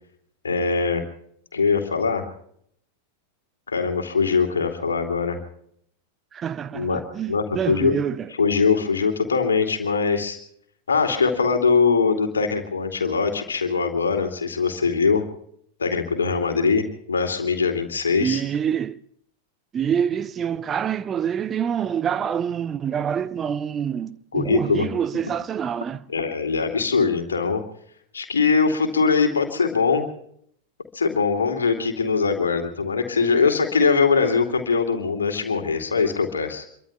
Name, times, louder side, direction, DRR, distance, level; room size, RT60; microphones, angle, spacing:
voice 1, 0.4-1.0 1.5-2.2 3.7-5.4 6.7-7.0 7.3-7.9 8.4-10.4 10.9-15.2 15.8-18.4 24.3-24.9 26.1-27.6 28.1-30.1 30.9-36.6, left 5 dB, 70° left, 2.5 m, -22 dB
voice 2, 6.3-8.3 18.2-19.0 19.7-26.0, right 8 dB, 25° right, 0.6 m, -26 dB
27.0 x 23.0 x 2.3 m
figure-of-eight pair, 90°, 0 cm